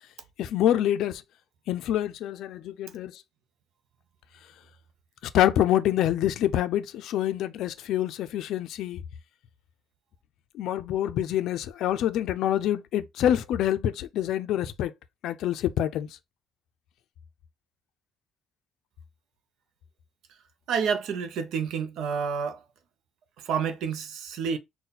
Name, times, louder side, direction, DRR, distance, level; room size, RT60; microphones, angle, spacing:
voice 1, 0.4-1.2 1.7-3.2 5.3-9.0 10.5-14.9 15.2-16.2, left 11 dB, 65° left, 0.4 m, -26 dB
voice 2, 20.7-22.6 23.4-24.6, right 6 dB, 65° right, 0.6 m, -29 dB
4.1 x 2.2 x 3.9 m
cardioid pair, 160°, 0 cm